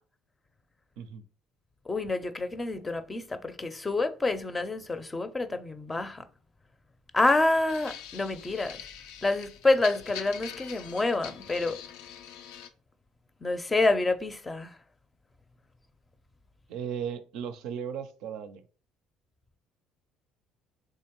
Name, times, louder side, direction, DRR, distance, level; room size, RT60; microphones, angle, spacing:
voice 1, 1.9-6.2 7.1-8.9 9.2-11.8 13.4-14.8, left 2 dB, 20° left, 0.5 m, -28 dB
sound 1, 7.7-12.7, left 9 dB, 75° left, 0.4 m, -44 dB
voice 2, 16.7-18.6, right 8 dB, 70° right, 0.4 m, -36 dB
3.7 x 3.1 x 3.0 m
hypercardioid pair, 65°, 0 cm